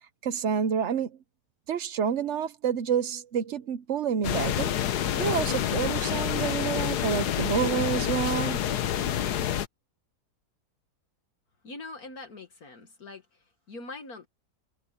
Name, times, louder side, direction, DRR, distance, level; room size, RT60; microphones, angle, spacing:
voice 1, 0.2-1.1 1.7-4.7 5.1-8.6, right 7 dB, 55° right, 1.0 m, -28 dB
sound 1, 4.2-9.7, left 10 dB, 90° left, 1.4 m, -28 dB
sound 2, 5.3-7.4, left 8 dB, 50° left, 0.7 m, -41 dB
voice 2, 11.6-14.3, left 3 dB, 65° left, 2.3 m, -43 dB
omnidirectional pair, 1.7 m